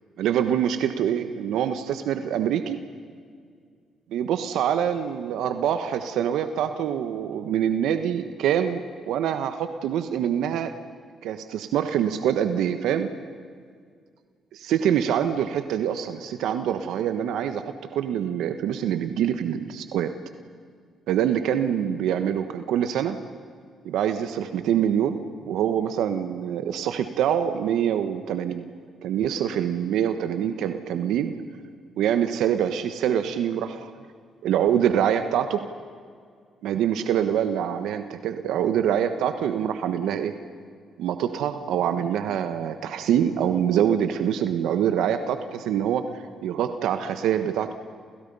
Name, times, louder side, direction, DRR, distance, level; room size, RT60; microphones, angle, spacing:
voice 1, 0.2-2.8 4.1-10.7 11.2-13.1 14.5-20.1 21.1-23.2 23.8-28.7 29.0-31.3 32.0-33.9 34.4-35.7 36.6-40.3 41.0-47.7, right 9 dB, 85° right, 9 dB, 1.3 m, -25 dB
29.0 x 29.0 x 5.6 m, 2.1 s
cardioid pair, 90°, 0 cm